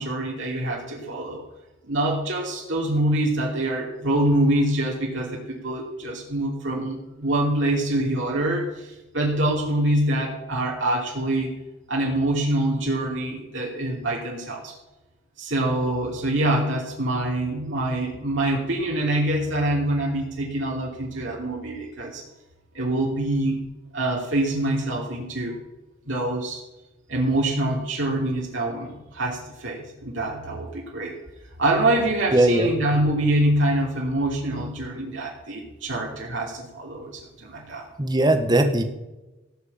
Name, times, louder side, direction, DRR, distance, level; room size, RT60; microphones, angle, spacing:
voice 1, 0.0-1.4 1.8-11.5 11.9-14.7 15.4-22.2 22.7-23.6 23.9-25.6 26.0-26.6 27.1-31.1 31.6-37.9, right 1 dB, 70° right, -3 dB, 2.9 m, -25 dB
voice 2, 32.3-32.7 38.0-38.8, right 1 dB, 20° right, 8 dB, 1.3 m, -19 dB
17.0 x 6.5 x 8.7 m, 1.0 s
head